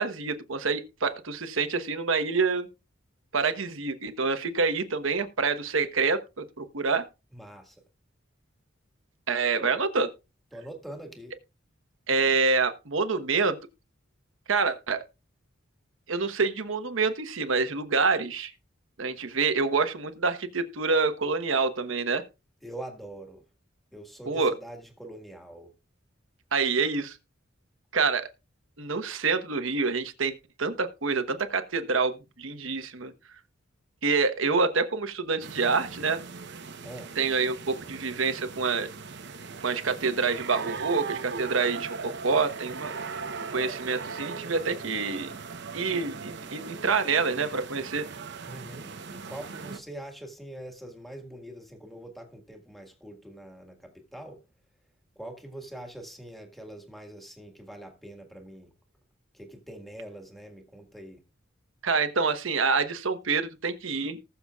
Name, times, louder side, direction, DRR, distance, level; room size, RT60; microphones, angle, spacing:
voice 1, 0.0-2.7 3.3-7.0 9.3-10.1 12.1-13.6 14.5-15.0 16.1-18.5 19.0-22.2 24.3-24.5 26.5-27.2 27.9-28.3 28.8-30.3 30.6-33.1 34.0-36.2 37.2-38.9 39.6-43.0 43.5-45.3 45.7-48.1 61.8-64.2, right 4 dB, 80° right, 1.2 m, -27 dB
voice 2, 7.3-7.8 10.5-11.3 22.6-23.4 23.9-25.7 36.8-37.1 48.5-54.4 55.2-58.7 59.3-61.2, right 1 dB, ahead, 1.8 m, -43 dB
sound 1, 35.4-49.8, right 5 dB, 60° right, 0.9 m, -39 dB
19.0 x 6.9 x 2.4 m
head